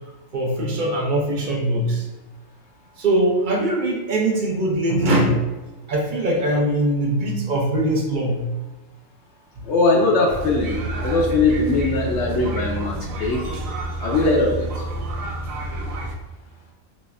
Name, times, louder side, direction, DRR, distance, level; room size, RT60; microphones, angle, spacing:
voice 1, 0.3-2.1 3.0-5.4 5.9-8.5, right 1 dB, 50° right, 0 dB, 0.6 m, -21 dB
voice 2, 9.7-13.4 14.0-14.7, left 3 dB, 65° left, 0 dB, 0.8 m, -20 dB
sound 1, 10.3-16.2, right 2 dB, 85° right, 1.0 m, -29 dB
4.0 x 3.0 x 2.4 m, 1.1 s
omnidirectional pair, 1.4 m